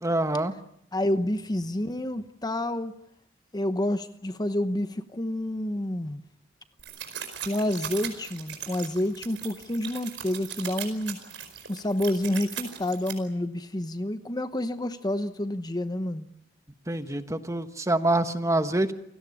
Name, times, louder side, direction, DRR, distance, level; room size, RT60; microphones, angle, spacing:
voice 1, 0.0-0.5 16.9-18.9, right 2 dB, 15° right, 10 dB, 1.4 m, -26 dB
voice 2, 0.9-2.9 3.5-6.2 7.4-11.2 11.7-16.3, left 1 dB, 20° left, 11 dB, 1.0 m, -29 dB
sound 1, 6.8-13.1, right 9 dB, 80° right, 4.9 m, -38 dB
29.0 x 18.0 x 8.5 m, 0.76 s
head